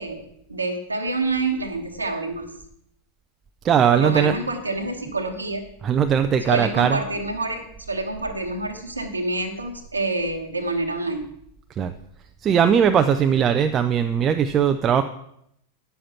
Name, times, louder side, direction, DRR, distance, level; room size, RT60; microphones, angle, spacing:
voice 1, 0.0-2.5 3.9-5.6 6.5-7.6 7.9-11.2, right 2 dB, 80° right, 3 dB, 1.2 m, -27 dB
voice 2, 3.6-4.3 5.8-7.0 11.8-11.9 12.4-15.0, right 8 dB, 25° right, 8 dB, 0.5 m, -19 dB
9.8 x 7.5 x 5.7 m, 0.75 s
figure-of-eight pair, 90°, 0 cm